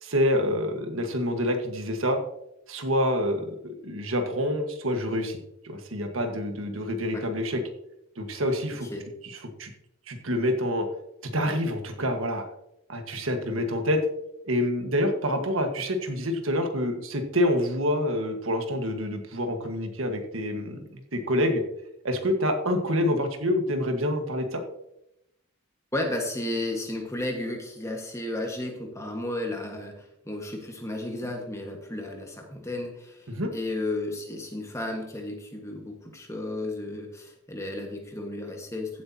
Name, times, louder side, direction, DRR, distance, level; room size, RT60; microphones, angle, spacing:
voice 1, 0.0-2.2 2.7-5.4 5.6-7.6 8.2-8.9 9.2-9.7 10.1-10.9 11.2-12.4 12.9-14.0 14.4-21.6 22.0-24.6 33.3-33.5, equal, 85° right, 5 dB, 1.6 m, -27 dB
voice 2, 25.9-39.0, left 1 dB, 15° left, 2 dB, 1.6 m, -33 dB
15.5 x 8.1 x 2.9 m, 0.81 s
head